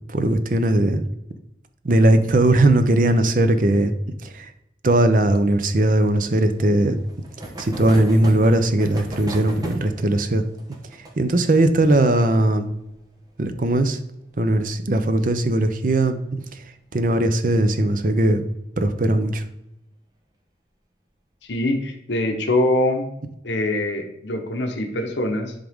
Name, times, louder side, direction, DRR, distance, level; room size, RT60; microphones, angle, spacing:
voice 1, 0.1-1.0 1.8-3.9 4.2-4.5 4.8-7.0 7.6-10.4 11.2-12.7 13.4-14.0 14.4-16.2 16.5-16.6 16.9-18.4 18.8-19.4, right 1 dB, 45° right, 9 dB, 0.6 m, -19 dB
sound 1, 6.4-15.6 15.8-15.9 16.2-16.3 16.6-16.7 18.1-18.3 19.0-19.4, right 1 dB, 20° right, 1.1 m, -39 dB
voice 2, 21.5-23.0 23.4-25.5, left 1 dB, 75° left, 3 dB, 1.0 m, -23 dB
10.5 x 3.7 x 3.6 m, 0.83 s
head